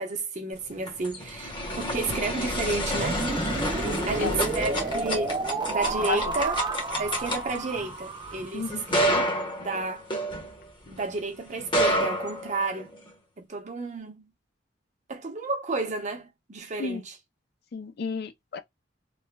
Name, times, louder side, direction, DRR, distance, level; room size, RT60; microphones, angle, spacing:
voice 1, 0.0-3.2 4.1-5.4 5.7-6.6 7.0-9.2 9.6-10.1 10.9-12.9 13.4-14.3 15.1-17.2, right 3 dB, 40° right, 0.8 m, -31 dB
sound 1, 0.6-11.0 11.6-13.1, equal, 30° left, 0.9 m, -29 dB
sound 2, 3.0-8.9, right 3 dB, 25° right, 0.4 m, -31 dB
voice 2, 3.9-4.6 6.0-6.3 8.5-8.8 16.8-17.0 17.7-18.6, left 5 dB, 60° left, 0.4 m, -33 dB
3.1 x 2.1 x 2.2 m
head